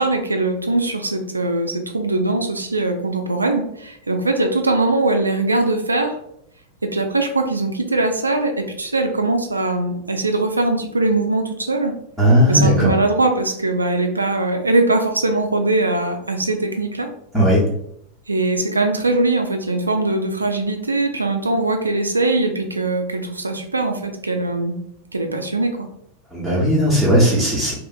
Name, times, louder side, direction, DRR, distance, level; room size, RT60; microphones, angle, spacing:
voice 1, 0.0-6.2 6.8-11.9 12.5-17.1 18.3-24.8 25.1-25.9, right 2 dB, 80° right, 5 dB, 0.3 m, -21 dB
voice 2, 12.2-12.9 17.3-17.6 26.3-27.7, equal, ahead, -9 dB, 0.8 m, -16 dB
2.8 x 2.4 x 2.3 m, 0.73 s
figure-of-eight pair, 90°, 0 cm